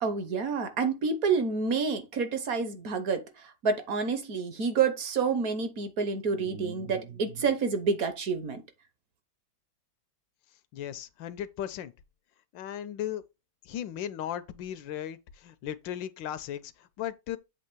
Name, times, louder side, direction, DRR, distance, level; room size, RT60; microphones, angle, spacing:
voice 1, 0.0-3.2 3.6-8.6, right 5 dB, 55° right, 1.2 m, -28 dB
voice 2, 10.7-11.9 12.5-13.2 13.6-17.4, left 10 dB, 90° left, 1.4 m, -36 dB
7.6 x 3.0 x 5.9 m
omnidirectional pair, 2.0 m